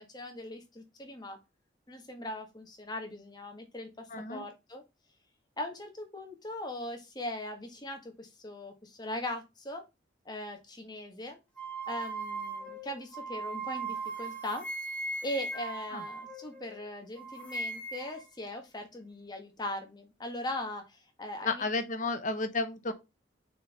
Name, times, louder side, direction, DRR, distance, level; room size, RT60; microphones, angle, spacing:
voice 1, 0.0-1.4 1.9-4.8 5.6-9.8 10.2-11.4 11.9-14.6 15.2-21.6, left 1 dB, 25° left, 1.7 m, -40 dB
voice 2, 4.1-4.4 15.9-16.0 21.4-22.9, left 3 dB, 45° left, 1.1 m, -32 dB
sound 1, 11.6-16.8 17.2-18.2, right 3 dB, 10° left, 2.2 m, -38 dB
6.1 x 4.6 x 4.4 m
head